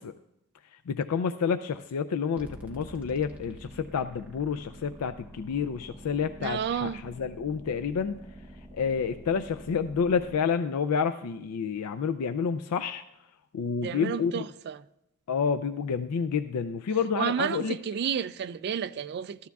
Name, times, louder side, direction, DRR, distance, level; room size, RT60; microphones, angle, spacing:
voice 1, 0.9-8.2 8.7-13.0 13.5-14.5 15.3-17.8, left 6 dB, 85° left, 0.4 m, -29 dB
sound 1, 2.4-10.4, right 1 dB, 5° right, 0.9 m, -47 dB
voice 2, 6.4-7.0 13.8-14.8 17.2-19.5, right 8 dB, 50° right, 0.3 m, -31 dB
14.0 x 12.5 x 2.3 m
head